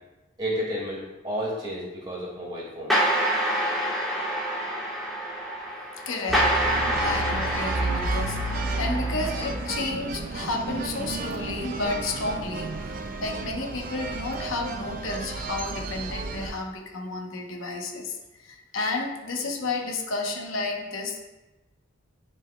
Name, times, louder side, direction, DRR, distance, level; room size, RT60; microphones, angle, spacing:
voice 1, 0.4-3.1, equal, 25° right, -5 dB, 1.9 m, -31 dB
sound 1, 2.9-9.8, equal, ahead, 1.2 m, -27 dB
voice 2, 6.1-6.5 7.0-21.3, left 3 dB, 80° left, 1 dB, 0.9 m, -32 dB
sound 2, 6.3-16.5, right 2 dB, 45° right, 0.4 m, -32 dB
10.5 x 4.5 x 2.2 m, 1.1 s
head